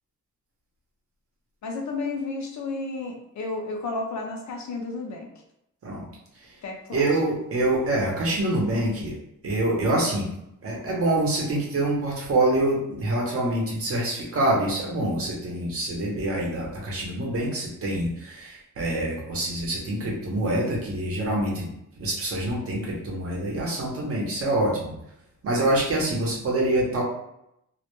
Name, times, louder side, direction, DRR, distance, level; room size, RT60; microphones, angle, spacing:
voice 1, 1.6-5.3 6.6-7.0, left 3 dB, 60° left, 1 dB, 0.5 m, -32 dB
voice 2, 6.9-9.1 9.4-10.3 10.6-21.7 22.0-24.9 25.4-27.0, right 1 dB, 45° right, -3 dB, 0.7 m, -25 dB
2.1 x 2.1 x 2.9 m, 0.81 s
wide cardioid pair, 175°, 32 cm